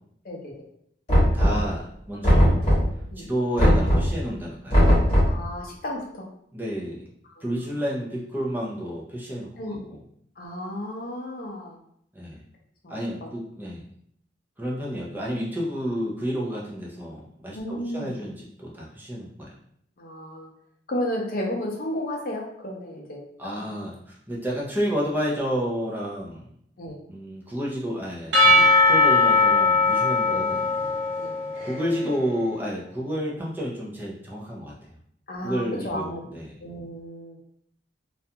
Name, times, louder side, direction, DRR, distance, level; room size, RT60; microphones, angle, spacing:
Knock, 1.1-1.8 2.2-3.0 3.6-4.2 4.7-5.4, equal, 30° left, 1.1 m, -18 dB
voice 1, 1.3-2.6 3.2-4.8 6.5-7.0 7.4-10.0 12.1-12.4 12.9-13.8 14.6-19.5 23.4-26.4 27.1-30.6 31.6-34.7 35.4-36.5, equal, 10° right, -4 dB, 0.5 m, -30 dB
voice 2, 5.3-6.3 7.4-7.5 9.6-9.8 10.4-11.8 12.8-13.3 17.5-18.1 20.0-20.5 20.9-23.6 26.8-27.0 30.3-30.4 31.2-31.3 35.3-36.2 36.6-37.4, left 1 dB, 50° left, -1 dB, 0.6 m, -33 dB
Percussion / Church bell, 28.3-32.0, left 2 dB, 65° right, 0.7 m, -19 dB
2.4 x 2.2 x 2.7 m, 0.69 s
head